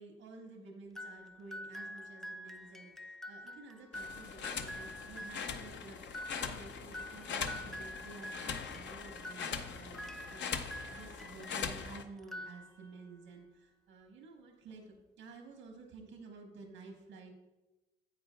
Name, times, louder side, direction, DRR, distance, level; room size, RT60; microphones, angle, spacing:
voice 1, 0.0-17.3, right 3 dB, 90° right, 2 dB, 1.2 m, -52 dB
sound 1, 1.0-11.8 12.2-13.1, left 1 dB, ahead, 0.4 m, -47 dB
sound 2, 3.9-12.0, left 6 dB, 65° left, 0.7 m, -41 dB
9.5 x 8.3 x 2.3 m, 1.1 s
cardioid pair, 90°, 20 cm